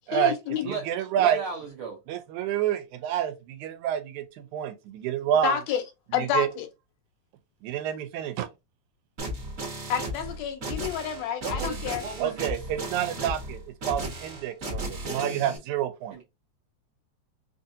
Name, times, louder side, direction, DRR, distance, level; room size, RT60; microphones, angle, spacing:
voice 1, 0.1-0.7 5.4-5.8 6.1-6.7 9.9-12.0, left 8 dB, 75° left, 1.7 m, -29 dB
voice 2, 0.7-1.4 2.1-5.6 6.2-6.5 7.6-8.5 12.2-13.6 13.9-16.2, right 10 dB, 90° right, 2.1 m, -28 dB
voice 3, 1.2-2.0 11.4-12.5 16.1-16.2, right 4 dB, 75° right, 1.2 m, -35 dB
sound 1, 9.2-15.6, right 1 dB, 55° right, 0.8 m, -35 dB
4.6 x 2.7 x 2.5 m
omnidirectional pair, 3.3 m